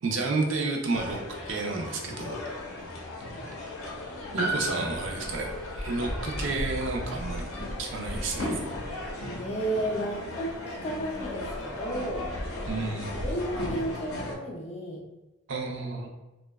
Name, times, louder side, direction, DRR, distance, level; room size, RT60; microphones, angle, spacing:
voice 1, 0.0-2.4 4.3-8.6 12.7-13.4 15.5-16.1, right 3 dB, 60° right, 1 dB, 0.4 m, -31 dB
sound 1, 0.9-14.3, left 1 dB, 80° left, 0.5 m, -36 dB
Piano, 4.4-9.0 9.2-9.3, right 1 dB, 90° right, 0.9 m, -37 dB
voice 2, 9.4-12.3 12.7-12.9 13.2-15.1 15.8-16.1, right 1 dB, 30° left, -1 dB, 0.4 m, -33 dB
2.6 x 2.1 x 2.2 m, 1.1 s
head